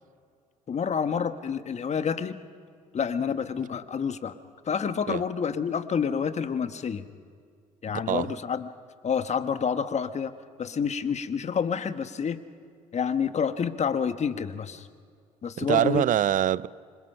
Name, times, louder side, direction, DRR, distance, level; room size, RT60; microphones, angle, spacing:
voice 1, 0.7-2.4 2.9-4.4 4.7-7.1 7.8-8.7 9.0-10.3 10.6-12.4 12.9-14.9 15.4-16.0, left 7 dB, 40° left, 1.4 m, -28 dB
voice 2, 8.1-8.4 15.6-16.7, right 11 dB, 45° right, 0.6 m, -24 dB
26.5 x 26.0 x 5.8 m
figure-of-eight pair, 50°, 18 cm